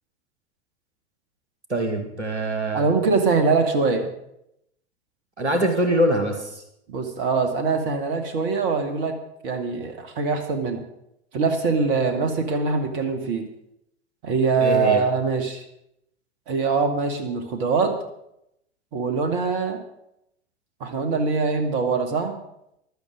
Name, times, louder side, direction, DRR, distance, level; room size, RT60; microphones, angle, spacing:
voice 1, 1.7-2.8 5.4-6.6 14.6-15.0, right 1 dB, 85° right, 5 dB, 2.3 m, -23 dB
voice 2, 2.7-4.1 6.9-9.1 9.4-10.8 11.3-13.5 14.2-15.6 16.5-17.9 18.9-19.8 20.8-22.4, right 4 dB, 55° right, 6 dB, 2.2 m, -23 dB
16.0 x 12.5 x 5.2 m, 0.77 s
figure-of-eight pair, 85°, 33 cm